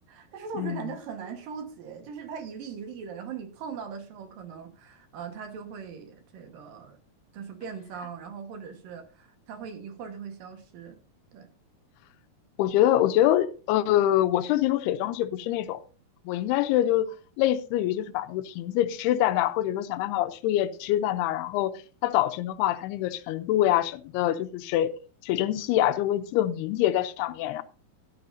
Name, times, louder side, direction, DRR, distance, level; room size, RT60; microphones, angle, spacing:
voice 1, 0.1-7.0 7.3-11.0 11.3-11.5, right 6 dB, 65° right, 2.9 m, -40 dB
voice 2, 12.6-15.8 16.3-17.1 17.4-24.9 25.2-27.6, left 13 dB, 85° left, 2.7 m, -25 dB
13.0 x 12.0 x 2.6 m
omnidirectional pair, 4.6 m